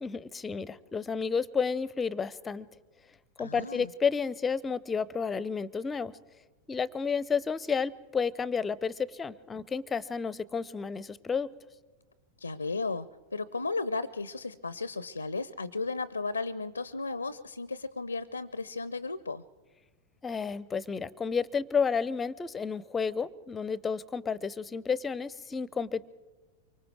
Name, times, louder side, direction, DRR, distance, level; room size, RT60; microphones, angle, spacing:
voice 1, 0.0-2.7 3.4-6.1 6.7-11.5 20.2-26.0, left 5 dB, 15° left, 22 dB, 0.7 m, -31 dB
voice 2, 3.4-3.9 12.4-19.4, left 3 dB, 80° left, 19 dB, 0.6 m, -35 dB
25.0 x 24.0 x 4.7 m, 1.3 s
figure-of-eight pair, 90°, 0 cm